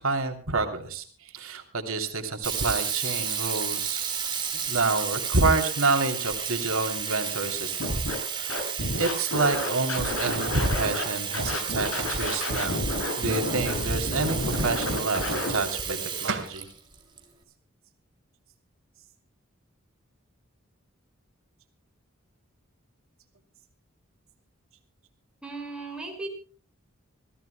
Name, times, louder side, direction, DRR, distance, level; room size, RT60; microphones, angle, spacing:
voice 1, 0.0-4.3 4.7-8.6 9.0-12.9 13.2-16.7, right 3 dB, 85° right, 5 dB, 3.0 m, -28 dB
Sink (filling or washing), 2.4-17.2, right 7 dB, 20° right, 3.3 m, -32 dB
Scratching (performance technique), 7.8-8.2 8.5-11.0 11.3-15.5, left 1 dB, 90° left, 7.6 m, -30 dB
sound 1, 12.0-12.3 15.9-16.0 16.3-16.6, right 4 dB, 65° right, 2.7 m, -33 dB
voice 2, 25.4-26.3, right 3 dB, 5° right, 1 dB, 5.1 m, -36 dB
27.0 x 16.5 x 2.2 m, 0.40 s
head